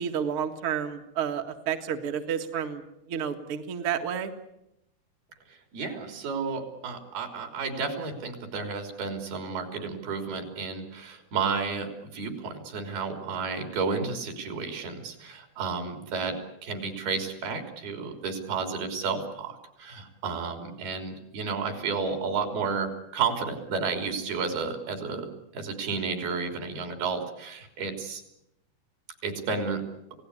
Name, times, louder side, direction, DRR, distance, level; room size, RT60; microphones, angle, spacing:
voice 1, 0.0-4.3, right 8 dB, 45° right, 4 dB, 1.8 m, -30 dB
voice 2, 5.7-28.2 29.2-29.8, right 5 dB, 70° right, 5 dB, 5.3 m, -32 dB
29.0 x 17.5 x 9.8 m, 0.87 s
omnidirectional pair, 4.6 m